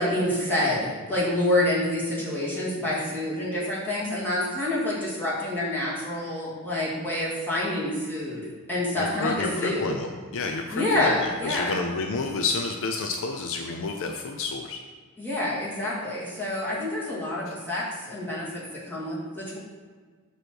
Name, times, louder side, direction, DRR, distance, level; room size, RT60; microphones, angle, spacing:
voice 1, 0.0-9.9 10.7-11.8 15.2-19.6, left 1 dB, 10° left, -8 dB, 2.2 m, -27 dB
voice 2, 9.0-14.8, left 3 dB, 60° left, 4 dB, 0.5 m, -30 dB
7.8 x 3.1 x 6.1 m, 1.5 s
head